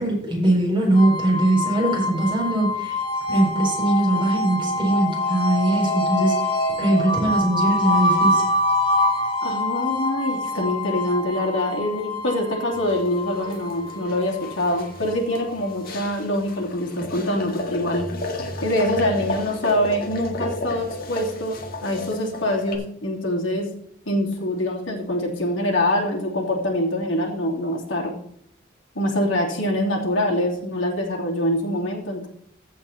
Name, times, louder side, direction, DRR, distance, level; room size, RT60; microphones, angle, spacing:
voice 1, 0.0-3.0 3.3-6.3 6.8-8.4, right 1 dB, 25° right, -2 dB, 4.4 m, -21 dB
sound 1, 0.9-15.9, left 1 dB, 25° left, 1.9 m, -25 dB
voice 2, 9.4-18.1 18.6-21.5 21.8-23.7 24.0-28.1 28.9-32.3, left 1 dB, 70° left, -1 dB, 3.0 m, -24 dB
sound 2, 12.7-22.8, left 2 dB, 50° left, 1.8 m, -33 dB
15.0 x 5.1 x 4.2 m, 0.66 s
head